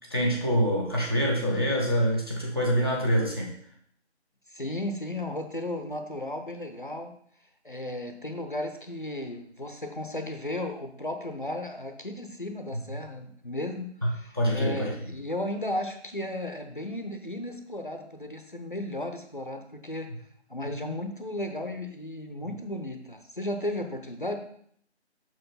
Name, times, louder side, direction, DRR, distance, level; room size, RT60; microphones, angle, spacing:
voice 1, 0.1-3.5 14.0-14.1 14.3-14.9 20.6-20.9 22.4-22.5, equal, 20° right, -2 dB, 1.0 m, -26 dB
voice 2, 4.5-7.1 7.6-20.1 20.5-24.4, left 1 dB, 45° left, 6 dB, 0.8 m, -35 dB
6.2 x 4.7 x 5.6 m, 0.64 s
figure-of-eight pair, 165°, 34 cm